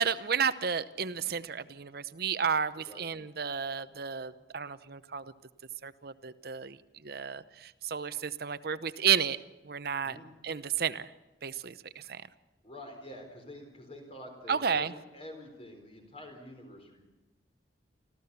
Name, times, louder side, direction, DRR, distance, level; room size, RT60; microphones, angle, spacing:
voice 1, 0.0-5.2 5.8-6.8 7.0-9.4 9.6-10.2 10.4-11.1 11.4-12.2 14.5-14.9, right 7 dB, 55° right, 14 dB, 0.8 m, -32 dB
voice 2, 12.6-17.0, left 1 dB, 30° left, 4 dB, 4.2 m, -47 dB
26.0 x 15.0 x 7.0 m, 1.1 s
head